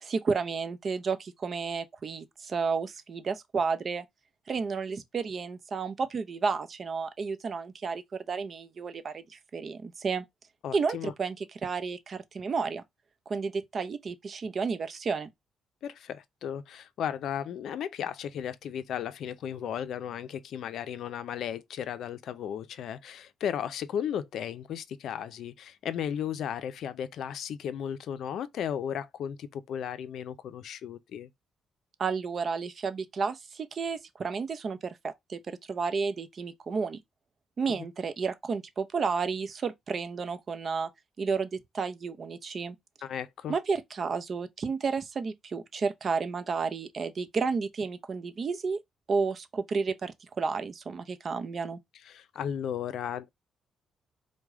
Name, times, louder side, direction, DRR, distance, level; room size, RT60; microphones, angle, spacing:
voice 1, 0.0-4.0 4.5-10.2 10.7-12.8 13.3-15.3 32.0-37.0 37.6-40.9 41.2-42.8 43.5-48.8 49.1-51.8, right 5 dB, 45° right, 0.6 m, -32 dB
voice 2, 10.6-11.1 15.8-31.3 37.7-37.8 43.0-43.5 52.1-53.3, left 9 dB, 70° left, 0.4 m, -35 dB
4.6 x 2.2 x 3.6 m
cardioid pair, 90°, 0 cm